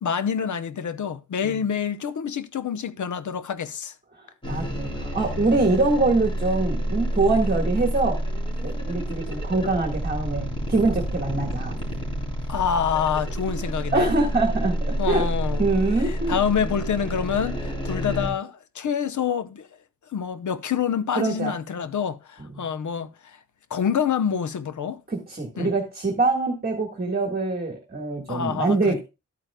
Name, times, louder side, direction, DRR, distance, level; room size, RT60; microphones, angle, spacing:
voice 1, 0.0-3.9 12.5-14.1 15.0-15.7 16.0-19.7 20.1-23.4 23.7-25.0 25.6-25.7 28.3-29.0, left 7 dB, 70° left, 0.8 m, -27 dB
voice 2, 4.2-8.2 8.6-11.8 13.9-15.3 15.6-16.3 21.1-21.5 22.5-22.6 25.1-29.0, right 3 dB, 30° right, 1.6 m, -24 dB
sound 1, 4.4-18.3, right 1 dB, 15° left, 3.3 m, -29 dB
12.0 x 9.0 x 2.2 m
wide cardioid pair, 130°, 31 cm